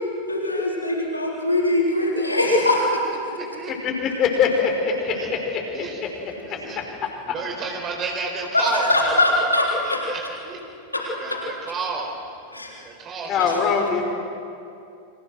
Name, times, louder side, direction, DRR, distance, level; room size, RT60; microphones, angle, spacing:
voice 1, 0.3-3.0 8.5-10.0 10.9-11.0 11.3-11.4 12.5-12.8, left 1 dB, 85° left, -1 dB, 3.7 m, -21 dB
voice 2, 2.0-2.3 3.1-3.9 4.3-4.5 4.9-5.3 5.7-6.0 6.4-6.8 7.3-9.4 9.8-10.6 11.0-12.1 12.8-13.5, right 4 dB, 30° right, 1 dB, 4.3 m, -32 dB
voice 3, 3.8-5.2 6.0-6.1 6.5-6.8 13.3-14.0, left 6 dB, 35° left, 2 dB, 5.3 m, -22 dB
29.5 x 26.0 x 6.4 m, 2.6 s
figure-of-eight pair, 90°, 0 cm